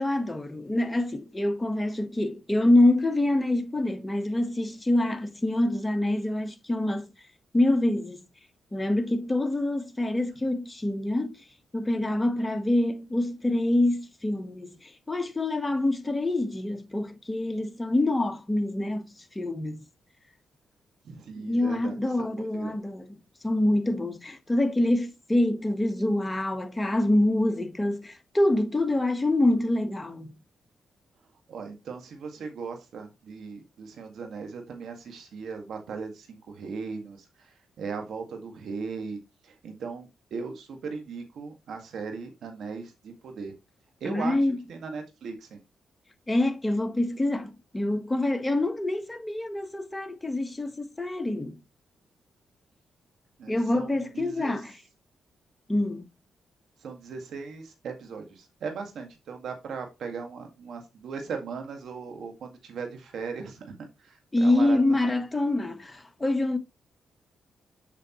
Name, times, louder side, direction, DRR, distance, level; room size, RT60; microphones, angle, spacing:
voice 1, 0.0-7.1 7.5-8.2 8.7-11.4 11.7-19.1 19.3-19.8 21.3-23.1 23.4-30.3 44.0-44.5 46.3-51.6 53.5-54.7 55.7-56.0 64.3-66.6, left 1 dB, 15° left, 1.3 m, -26 dB
voice 2, 21.0-22.8 31.5-43.5 44.0-45.6 53.4-54.6 56.8-65.1, right 5 dB, 75° right, 1.8 m, -38 dB
7.6 x 5.9 x 3.0 m
supercardioid pair, 60°, 0 cm